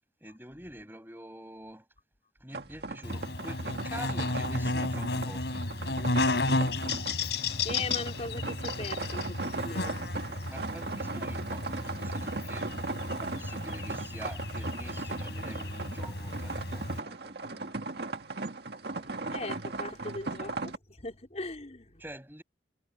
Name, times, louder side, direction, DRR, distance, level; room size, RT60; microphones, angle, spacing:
voice 1, 0.2-1.9 2.4-5.7 10.5-12.7 13.1-17.7 22.0-22.4, right 1 dB, 10° right, 7.5 m, -46 dB
sound 1, 2.5-20.8, right 3 dB, 60° right, 1.9 m, -38 dB
Buzz, 3.0-17.0, left 2 dB, 70° left, 4.1 m, -33 dB
voice 2, 7.4-10.4 18.9-22.0, left 2 dB, 40° left, 4.1 m, -40 dB
head